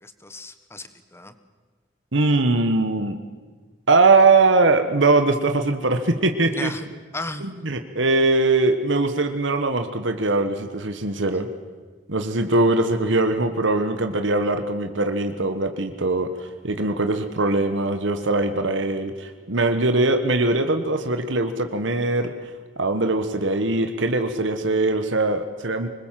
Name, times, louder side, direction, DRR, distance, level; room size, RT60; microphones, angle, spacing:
voice 1, 0.0-1.3 6.5-6.9 7.1-7.5, left 2 dB, 15° left, 10 dB, 1.4 m, -34 dB
voice 2, 2.1-3.2 3.9-6.7 7.4-11.5 12.1-22.3 22.8-25.9, right 3 dB, 70° right, 7 dB, 1.4 m, -21 dB
25.0 x 21.0 x 7.7 m, 1.5 s
head